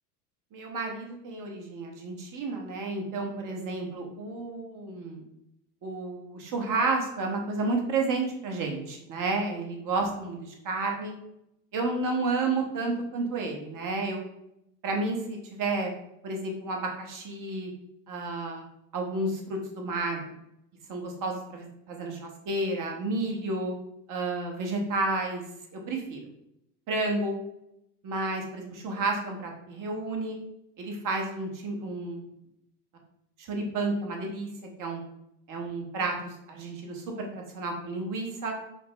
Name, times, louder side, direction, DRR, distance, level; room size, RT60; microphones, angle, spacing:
voice 1, 0.5-5.2 5.8-11.2 11.7-14.2 14.8-15.9 16.2-17.7 18.1-18.6 18.9-20.2 20.9-23.7 24.1-25.4 25.7-26.2 26.9-27.3 28.0-30.4 30.8-32.2 33.4-34.5 34.8-35.0 35.5-38.5, right 3 dB, 40° right, 1 dB, 1.2 m, -31 dB
5.2 x 2.1 x 3.9 m, 0.80 s
hypercardioid pair, 85°, 49 cm